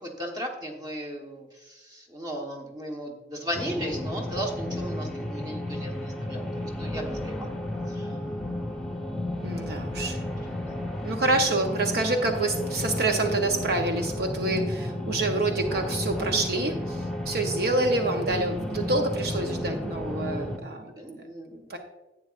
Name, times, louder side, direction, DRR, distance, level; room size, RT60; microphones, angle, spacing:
voice 1, 0.0-7.5 7.9-8.1 10.2-10.3 10.6-10.8 21.0-21.8, equal, 25° right, 1 dB, 1.2 m, -36 dB
sound 1, 3.5-20.6, left 1 dB, 5° left, 0.9 m, -32 dB
voice 2, 9.4-10.2 11.0-21.2 21.7-21.8, right 2 dB, 60° right, 4 dB, 0.7 m, -27 dB
11.0 x 8.5 x 2.5 m, 1.1 s
head